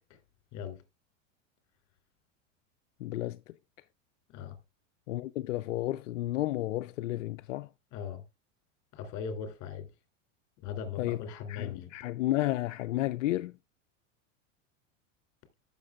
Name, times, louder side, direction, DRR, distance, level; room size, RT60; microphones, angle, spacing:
voice 1, 0.5-0.8 4.3-4.6 7.9-8.2 8.9-9.9 10.6-11.9, left 7 dB, 50° left, 2.9 m, -39 dB
voice 2, 3.0-3.5 5.1-7.7 11.0-11.2 11.5-13.6, left 16 dB, 85° left, 0.5 m, -32 dB
14.5 x 6.6 x 2.4 m
hypercardioid pair, 105°, 38 cm